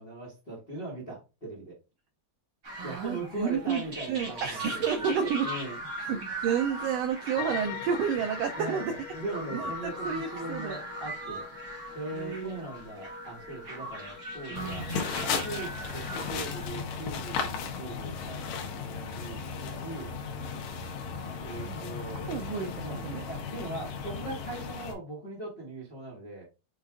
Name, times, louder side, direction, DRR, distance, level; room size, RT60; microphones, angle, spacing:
voice 1, 0.0-1.8 2.8-5.8 8.6-14.9 15.2-20.1 21.4-22.3 22.8-26.4, right 2 dB, 35° left, 0.9 m, -40 dB
sound 1, 2.6-16.7, right 2 dB, 50° right, 0.8 m, -40 dB
voice 2, 2.7-3.8 4.1-5.5 6.0-8.9 9.5-10.8 12.2-12.6 14.5-15.0 21.7-21.9 22.3-23.3, right 7 dB, 85° right, 1.4 m, -31 dB
sound 2, 7.4-15.0, left 11 dB, 90° left, 2.0 m, -44 dB
sound 3, 14.6-24.9, left 5 dB, 75° left, 2.1 m, -35 dB
6.5 x 2.4 x 3.4 m
omnidirectional pair, 3.4 m